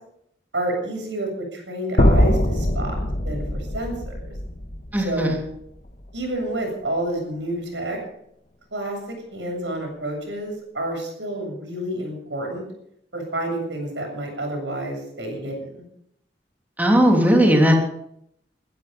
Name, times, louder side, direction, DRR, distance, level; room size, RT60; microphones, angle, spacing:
voice 1, 0.5-3.0 3.2-4.3 5.0-5.4 6.1-8.0 8.7-12.6 13.1-15.8, right 1 dB, 85° right, 2 dB, 7.7 m, -29 dB
sound 1, 2.0-6.2, left 1 dB, 45° left, 1.7 m, -22 dB
voice 2, 4.9-5.3 16.8-17.8, equal, 10° right, 0 dB, 3.2 m, -17 dB
22.0 x 12.0 x 5.4 m, 0.74 s
head